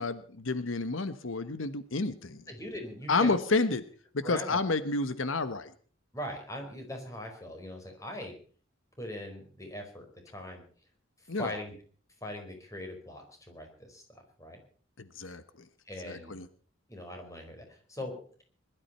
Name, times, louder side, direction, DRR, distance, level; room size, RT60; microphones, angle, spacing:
voice 1, 0.0-2.4 3.1-3.8 4.1-5.7 11.3-11.5 15.0-15.4 16.0-16.5, left 3 dB, 80° left, 12 dB, 1.1 m, -30 dB
voice 2, 2.5-3.4 4.2-4.6 6.1-8.3 9.0-10.6 11.4-11.7 12.2-14.6 15.8-16.4 16.9-18.4, left 1 dB, 15° left, 4 dB, 4.8 m, -41 dB
21.0 x 12.5 x 5.5 m, 0.43 s
head